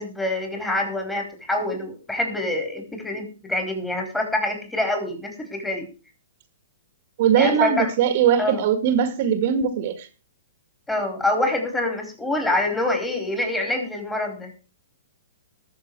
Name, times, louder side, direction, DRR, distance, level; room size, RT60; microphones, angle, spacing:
voice 1, 0.0-5.9 7.4-7.9 8.4-8.6 10.9-14.5, left 2 dB, 10° left, 4 dB, 4.7 m, -26 dB
voice 2, 7.2-10.1, right 8 dB, 50° right, 9 dB, 2.2 m, -20 dB
20.5 x 7.2 x 4.8 m, 0.34 s
figure-of-eight pair, 115°, 0 cm